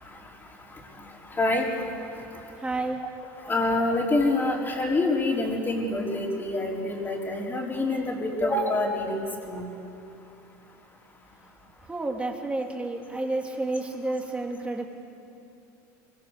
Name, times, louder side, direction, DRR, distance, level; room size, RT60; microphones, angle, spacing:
voice 1, 1.3-1.7 3.4-9.7, left 2 dB, 20° left, 0 dB, 4.5 m, -26 dB
voice 2, 2.6-3.0 11.9-14.9, right 2 dB, 10° right, 1 dB, 3.2 m, -30 dB
24.5 x 24.0 x 6.9 m, 2.9 s
supercardioid pair, 105°, 10 cm